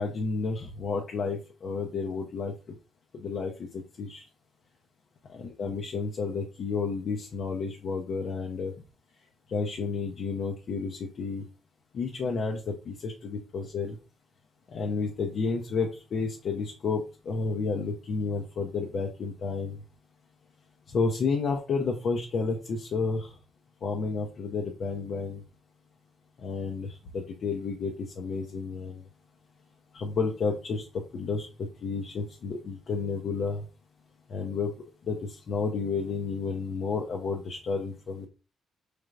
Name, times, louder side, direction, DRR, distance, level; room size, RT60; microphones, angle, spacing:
voice 1, 0.0-2.5 3.1-4.2 5.3-8.7 9.5-11.5 11.9-14.0 14.7-19.8 20.9-23.3 23.8-25.4 26.4-29.0 29.9-33.6 34.3-34.7 35.1-38.3, left 4 dB, 60° left, 1 dB, 0.7 m, -31 dB
4.4 x 3.3 x 2.5 m, 0.31 s
cardioid pair, 90°, 0 cm